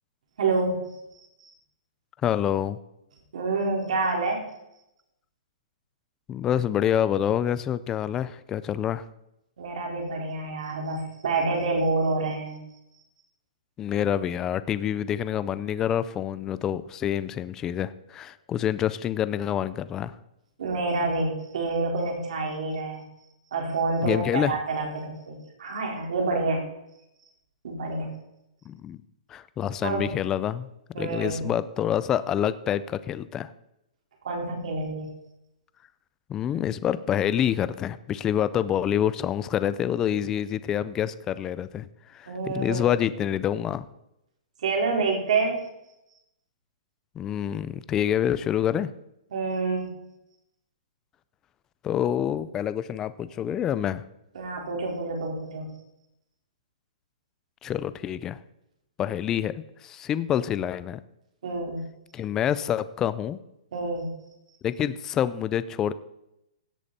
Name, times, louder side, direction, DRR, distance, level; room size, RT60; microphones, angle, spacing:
voice 1, 0.4-1.0 1.4-1.5 3.3-4.4 9.6-12.6 20.6-23.0 23.5-26.6 27.6-28.1 29.8-30.1 30.9-31.5 34.2-35.1 42.3-43.0 44.6-45.6 49.3-50.1 54.3-55.7 61.4-61.8 63.7-64.1, right 3 dB, 60° right, 1 dB, 4.4 m, -28 dB
voice 2, 2.2-2.8 6.3-9.0 13.8-20.1 24.0-24.6 28.7-29.0 29.3-30.7 31.0-33.5 36.3-43.9 47.2-48.9 51.8-54.0 57.6-58.4 59.0-61.0 62.1-63.4 64.6-65.9, left 10 dB, 10° left, 15 dB, 0.3 m, -27 dB
16.5 x 8.6 x 4.2 m, 0.86 s
hypercardioid pair, 170°, 4 cm